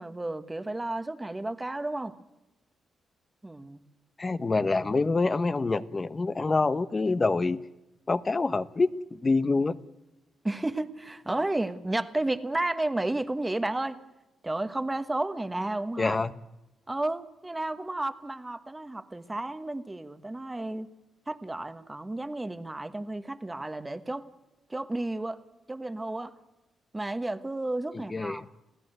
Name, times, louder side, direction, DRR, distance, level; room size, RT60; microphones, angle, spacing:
voice 1, 0.0-2.1 3.4-3.8 10.4-14.0 14.4-16.2 16.9-20.9 21.3-24.3 24.7-25.4 25.7-26.3 26.9-28.4, right 2 dB, 15° right, 1.3 m, -32 dB
voice 2, 4.2-7.6 8.1-9.8 16.0-16.3 27.9-28.4, left 3 dB, 25° left, 0.9 m, -26 dB
26.5 x 16.5 x 7.9 m
cardioid pair, 105°, 0 cm